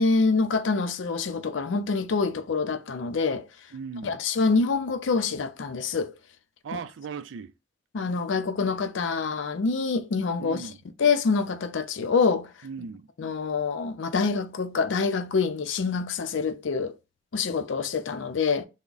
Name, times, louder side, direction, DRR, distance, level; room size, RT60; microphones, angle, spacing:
voice 1, 0.0-3.5 4.0-6.1 6.7-6.8 7.9-10.7 11.0-12.5 13.2-17.0 17.3-18.7, left 4 dB, 80° left, 0.5 m, -26 dB
voice 2, 3.7-4.2 6.6-7.5 10.4-10.8 12.6-13.1, right 5 dB, 90° right, 0.4 m, -37 dB
3.4 x 2.1 x 3.8 m
head